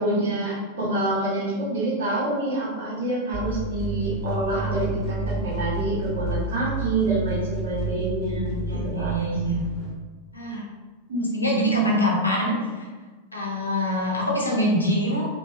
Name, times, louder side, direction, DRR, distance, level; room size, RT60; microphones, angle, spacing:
voice 1, 0.0-8.7 8.9-9.1 11.1-11.9, right 2 dB, 60° right, -7 dB, 1.0 m, -26 dB
sound 1, 3.3-9.9, right 3 dB, 15° left, 1.0 m, -30 dB
voice 2, 8.7-9.5 10.3-10.6 11.1-12.9 13.3-15.3, left 1 dB, 80° left, -3 dB, 0.6 m, -25 dB
2.8 x 2.2 x 2.4 m, 1.4 s
figure-of-eight pair, 90°, 0 cm